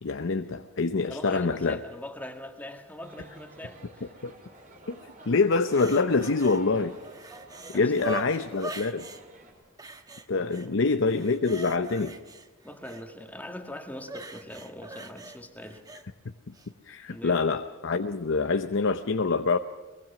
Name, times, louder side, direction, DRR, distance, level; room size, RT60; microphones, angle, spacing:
voice 1, 0.0-1.8 4.2-4.3 4.9-5.0 5.3-7.0 7.7-9.1 10.3-12.2 16.9-19.6, left 4 dB, 65° left, 9 dB, 0.7 m, -25 dB
voice 2, 1.1-4.1 7.7-8.3 10.4-10.8 12.6-15.8 17.1-17.4, left 1 dB, 10° left, 5 dB, 1.8 m, -42 dB
sound 1, 3.0-9.5, right 2 dB, 40° right, 4.7 m, -50 dB
sound 2, 5.5-6.6 7.0-9.2 9.8-10.7 11.0-13.0 14.0-16.0 16.5-16.7, right 2 dB, 20° right, 1.1 m, -41 dB
22.5 x 22.0 x 6.0 m, 1.3 s
head